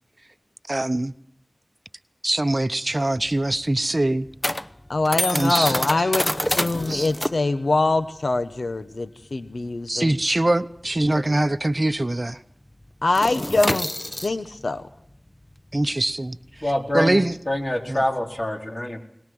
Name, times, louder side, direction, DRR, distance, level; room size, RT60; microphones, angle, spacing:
voice 1, 0.7-1.1 2.2-4.3 5.3-6.1 6.9-7.1 9.9-12.4 15.7-17.4 17.9-18.0, right 1 dB, 40° right, 0.8 m, -23 dB
sound 1, 2.9-11.9 12.1-12.4 12.7-18.4, left 1 dB, 20° left, 0.8 m, -29 dB
voice 2, 4.9-6.3 6.6-10.1 13.0-14.8, left 2 dB, 80° left, 1.0 m, -23 dB
voice 3, 16.6-19.0, left 1 dB, 40° left, 4.3 m, -26 dB
22.0 x 20.0 x 7.8 m
wide cardioid pair, 45°, 0 cm